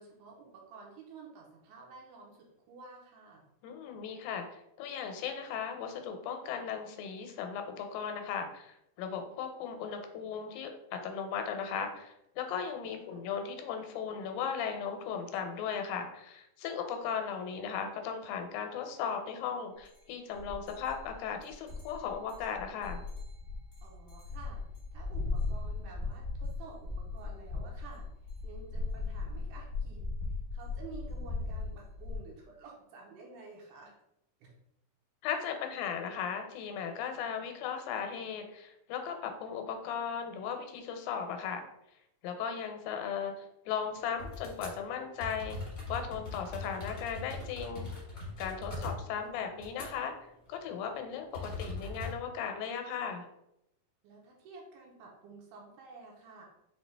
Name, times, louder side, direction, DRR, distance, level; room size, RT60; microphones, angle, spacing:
voice 1, 0.0-3.4 12.9-13.3 23.8-24.6 24.9-28.1 28.4-30.0 30.5-33.9 34.4-34.5 48.7-49.0 54.0-56.5, right 4 dB, 75° right, -1 dB, 2.2 m, -51 dB
voice 2, 3.6-23.0 35.2-41.6 42.2-45.6 45.9-47.9 48.4-50.1 50.5-53.2, left 7 dB, 85° left, 5 dB, 2.3 m, -37 dB
sound 1, 19.8-20.0 20.3-32.2, left 3 dB, 65° left, 0.6 m, -38 dB
sound 2, 44.2-44.8 45.2-50.2 50.4-50.7 51.3-52.1, left 2 dB, 45° left, 1.1 m, -41 dB
5.8 x 2.7 x 3.3 m, 0.82 s
omnidirectional pair, 4.0 m